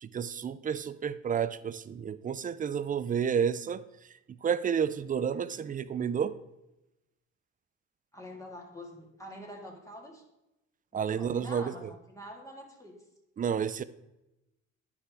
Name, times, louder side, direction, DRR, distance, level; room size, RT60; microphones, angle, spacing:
voice 1, 0.0-3.8 4.4-6.4 10.9-11.9 13.4-13.8, right 7 dB, 30° right, 15 dB, 0.4 m, -30 dB
voice 2, 8.1-10.2 10.9-12.9, left 1 dB, 10° left, 0 dB, 1.7 m, -46 dB
9.6 x 5.6 x 3.4 m, 0.95 s
cardioid pair, 90°, 30 cm